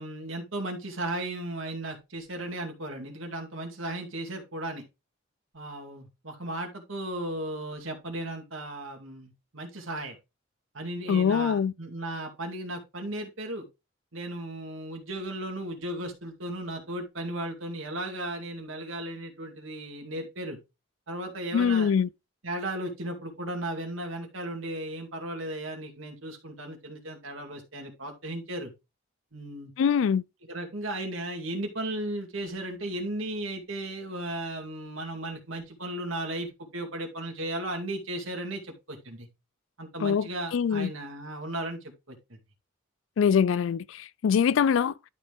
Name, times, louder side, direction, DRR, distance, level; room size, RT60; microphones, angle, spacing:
voice 1, 0.0-4.8 5.5-10.2 10.7-13.7 14.1-20.6 21.1-21.9 22.4-28.7 29.3-29.7 30.5-39.3 39.8-41.8 42.1-42.2, right 1 dB, 75° right, 2.2 m, -35 dB
voice 2, 11.1-11.7 21.5-22.1 29.8-30.2 40.0-40.9 43.2-44.9, left 7 dB, 65° left, 0.3 m, -24 dB
12.0 x 4.2 x 3.4 m
head